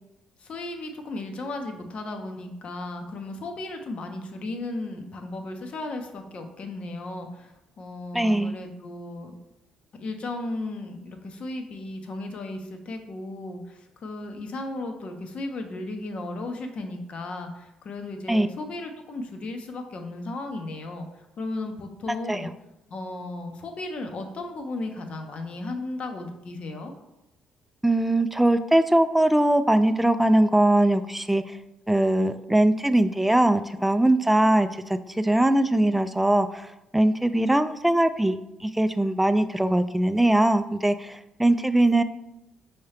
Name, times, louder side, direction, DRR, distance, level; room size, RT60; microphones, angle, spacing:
voice 1, 0.4-9.4 10.0-21.1 21.4-22.5 22.9-26.9, left 2 dB, 55° left, 5 dB, 0.8 m, -35 dB
voice 2, 8.1-8.6 18.3-18.5 22.3-22.5 27.8-31.6 31.9-42.0, right 1 dB, 5° right, 11 dB, 0.3 m, -21 dB
5.3 x 2.8 x 3.3 m, 0.91 s
hypercardioid pair, 50°, 2 cm